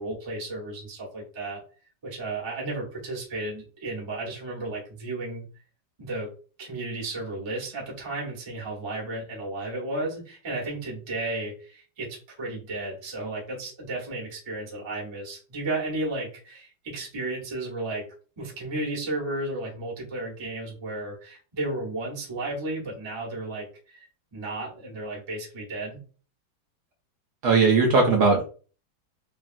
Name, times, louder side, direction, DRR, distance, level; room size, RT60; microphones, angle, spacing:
voice 1, 0.0-1.6 2.0-5.4 6.0-6.3 6.6-18.1 18.4-24.1 24.3-26.0, right 2 dB, 25° right, -3 dB, 0.6 m, -33 dB
voice 2, 27.4-28.4, right 4 dB, 65° right, 0 dB, 1.0 m, -19 dB
3.2 x 2.3 x 2.5 m, 0.37 s
omnidirectional pair, 2.1 m